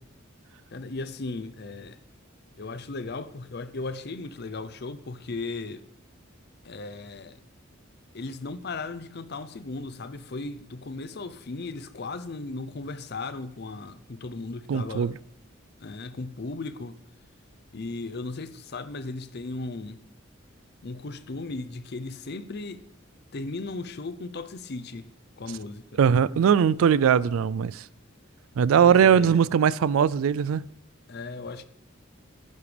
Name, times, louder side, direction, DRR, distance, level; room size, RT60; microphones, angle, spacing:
voice 1, 0.7-2.0 2.6-5.8 6.6-7.4 8.1-15.1 15.8-17.0 17.7-20.0 20.8-22.8 23.3-25.1 25.4-26.0 28.8-29.4 31.1-31.6, left 3 dB, 50° left, 0.6 m, -36 dB
voice 2, 14.7-15.1 26.0-27.8 28.6-30.6, right 7 dB, 85° right, 0.3 m, -20 dB
13.5 x 11.0 x 3.4 m
head